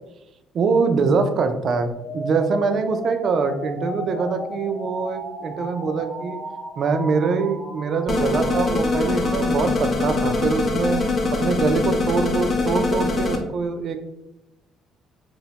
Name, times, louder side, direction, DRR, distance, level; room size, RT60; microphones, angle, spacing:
voice 1, 0.5-6.4 6.8-11.0 11.3-14.0, right 4 dB, 50° right, 8 dB, 0.3 m, -23 dB
sound 1, 1.9-11.9, right 1 dB, 10° right, 0.7 m, -36 dB
sound 2, 8.1-13.4, left 3 dB, 40° left, 0.5 m, -23 dB
2.9 x 2.1 x 2.8 m, 0.91 s
cardioid pair, 105°, 0 cm